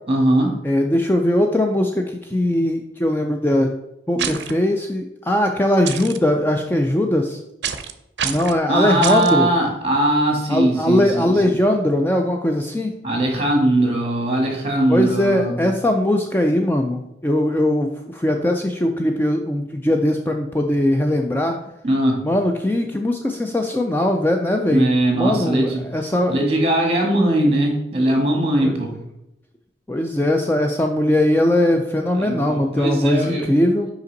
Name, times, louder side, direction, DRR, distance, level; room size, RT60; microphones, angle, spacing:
voice 1, 0.1-0.5 4.1-4.3 8.7-11.6 13.0-15.6 21.8-22.2 24.6-25.8 26.3-28.9 32.1-33.5, right 1 dB, 30° right, 1 dB, 1.5 m, -20 dB
voice 2, 0.6-3.7 4.1-7.4 8.2-9.5 10.5-12.9 14.9-21.6 22.2-26.3 28.6-28.8 29.9-33.9, left 1 dB, 10° left, 3 dB, 0.3 m, -20 dB
sound 1, 4.2-4.5 5.9-6.2 7.6-7.9 8.2-8.6 9.0-9.3, right 8 dB, 70° right, 0.5 m, -26 dB
5.4 x 5.1 x 3.9 m, 0.86 s
head